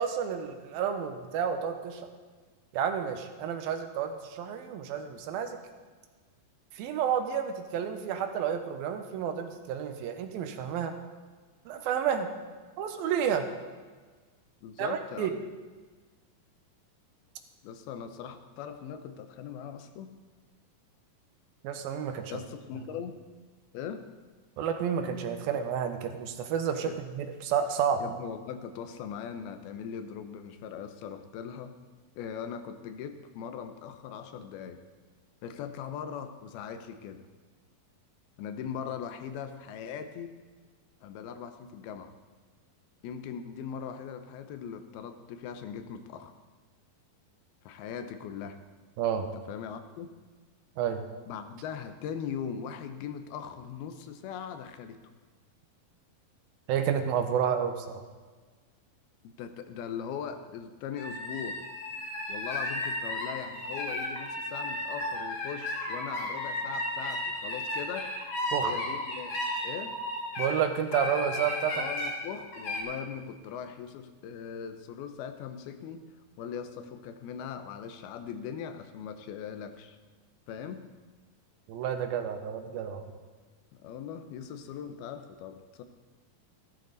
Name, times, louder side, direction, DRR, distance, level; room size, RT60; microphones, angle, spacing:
voice 1, 0.0-2.0 2.7-5.6 6.8-10.9 11.7-12.3 12.8-13.5 14.8-15.3 21.6-22.3 24.6-28.1 49.0-49.3 50.8-51.0 56.7-58.0 68.5-68.7 70.4-71.9 81.7-83.0, right 8 dB, 80° right, 7 dB, 2.7 m, -30 dB
voice 2, 14.6-15.4 17.6-20.1 22.3-23.2 23.7-24.1 26.8-27.0 28.0-31.8 32.2-34.8 35.4-37.2 38.4-40.3 41.0-42.1 43.0-46.4 47.7-48.6 49.3-50.1 51.3-55.0 59.2-61.6 62.3-68.1 68.6-70.0 71.7-76.0 76.4-80.0 80.5-80.8 83.8-85.8, left 7 dB, 90° left, 8 dB, 2.8 m, -40 dB
sound 1, 61.0-70.6 70.9-72.1 72.5-72.8, left 1 dB, 40° left, 2.3 m, -34 dB
14.0 x 13.0 x 4.0 m, 1.4 s
omnidirectional pair, 4.3 m